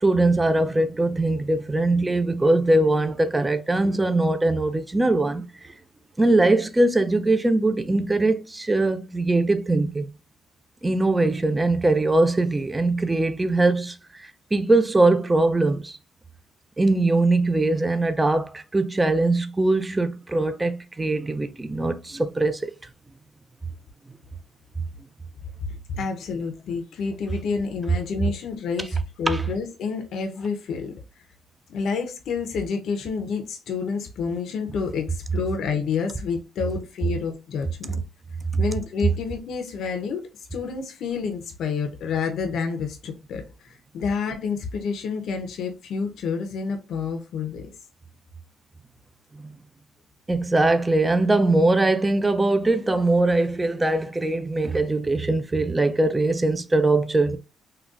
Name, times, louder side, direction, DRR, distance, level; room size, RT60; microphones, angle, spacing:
voice 1, 0.0-5.7 6.2-10.1 10.8-16.0 16.8-22.7 29.3-29.4 49.3-49.5 50.3-57.4, right 2 dB, 20° right, 0.4 m, -21 dB
voice 2, 25.7-31.0 31.7-38.0 38.6-47.7, left 5 dB, 75° left, 0.6 m, -29 dB
3.8 x 2.2 x 2.4 m
cardioid pair, 90°, 0 cm